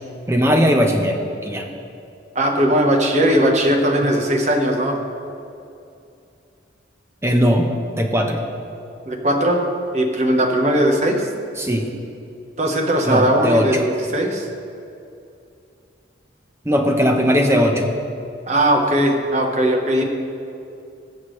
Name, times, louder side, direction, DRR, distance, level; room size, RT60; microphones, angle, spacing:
voice 1, 0.3-1.7 7.2-7.7 8.0-8.4 11.6-11.9 13.1-13.7 16.6-17.9, equal, 15° right, 2 dB, 1.0 m, -18 dB
voice 2, 2.3-5.0 9.1-9.6 9.9-11.3 12.6-14.5 18.5-20.0, right 1 dB, 35° right, 2 dB, 1.2 m, -18 dB
21.0 x 7.3 x 3.3 m, 2.6 s
head